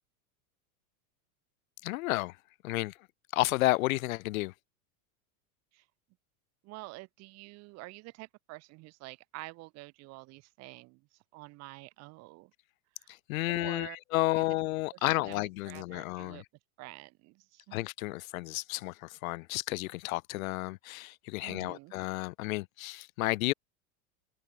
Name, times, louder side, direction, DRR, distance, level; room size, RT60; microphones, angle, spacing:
voice 1, 1.8-2.4 2.6-3.0 3.3-4.5 13.1-16.4 17.7-23.5, left 20 dB, 70° left, 0.7 m, -32 dB
voice 2, 6.6-12.5 13.0-13.2 13.5-14.0 14.3-14.4 15.1-15.4 15.7-16.4 16.8-17.8 21.4-21.9, right 23 dB, 35° right, 1.8 m, -48 dB
supercardioid pair, 165°, 43 cm